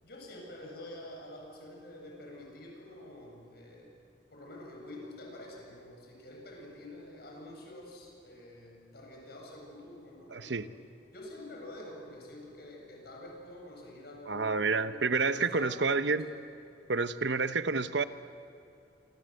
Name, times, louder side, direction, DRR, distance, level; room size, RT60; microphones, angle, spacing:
voice 1, 0.0-4.0 4.3-10.7 11.1-16.4, left 1 dB, 60° left, 0 dB, 7.9 m, -47 dB
voice 2, 10.3-10.6 14.3-16.3 16.9-18.0, right 4 dB, 80° right, 11 dB, 1.0 m, -29 dB
28.0 x 25.5 x 7.9 m, 2.6 s
head